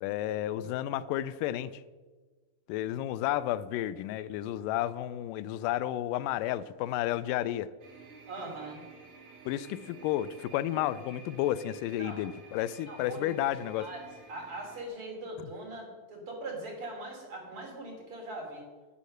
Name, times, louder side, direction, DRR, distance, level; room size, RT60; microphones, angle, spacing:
voice 1, 0.0-1.8 2.7-7.7 9.5-13.9, left 13 dB, 90° left, 15 dB, 2.2 m, -32 dB
sound 1, 7.8-14.9, right 4 dB, 70° right, 3.1 m, -52 dB
voice 2, 8.3-8.8 12.0-12.2 12.9-13.3 13.8-14.0 14.3-18.6, right 2 dB, 45° right, -1 dB, 3.8 m, -41 dB
11.5 x 9.6 x 6.5 m, 1.4 s
omnidirectional pair, 3.7 m